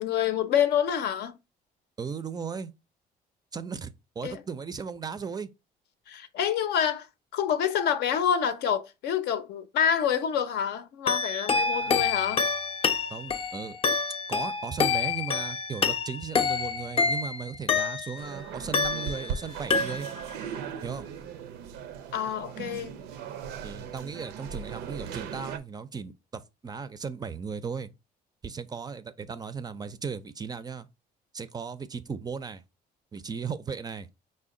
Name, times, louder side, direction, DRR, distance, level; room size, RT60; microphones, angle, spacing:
voice 1, 0.0-1.3 4.2-4.4 6.1-7.1 7.3-12.5 22.1-22.9, left 8 dB, 75° left, 0.6 m, -27 dB
voice 2, 2.0-2.7 3.5-5.5 11.7-12.1 13.1-13.8 14.3-20.1 20.8-21.1 23.6-27.9 28.4-30.9 31.3-32.6 33.1-34.1, right 6 dB, 25° right, 0.4 m, -36 dB
sound 1, 11.1-18.3 18.7-19.4 19.7-20.3, left 5 dB, 35° left, 0.5 m, -27 dB
sound 2, 18.2-25.6, right 7 dB, 90° right, 0.5 m, -38 dB
5.0 x 2.2 x 3.7 m
cardioid pair, 110°, 17 cm